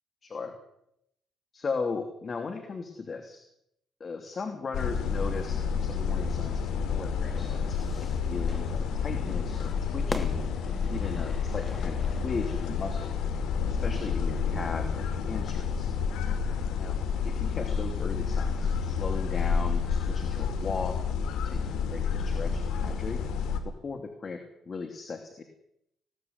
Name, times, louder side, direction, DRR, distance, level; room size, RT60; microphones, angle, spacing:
voice 1, 0.2-0.5 1.5-3.4 4.0-6.6 6.9-10.5 10.9-13.1 13.6-15.9 16.8-17.0 17.2-21.0 21.3-23.2 23.6-25.4, left 4 dB, 40° left, 6 dB, 3.0 m, -37 dB
sound 1, 4.7-23.6, left 6 dB, 85° left, 2.9 m, -29 dB
Fire / Fireworks, 7.3-12.9, left 2 dB, 20° left, 3.0 m, -43 dB
20.0 x 17.5 x 9.6 m, 0.78 s
cardioid pair, 90°, 0 cm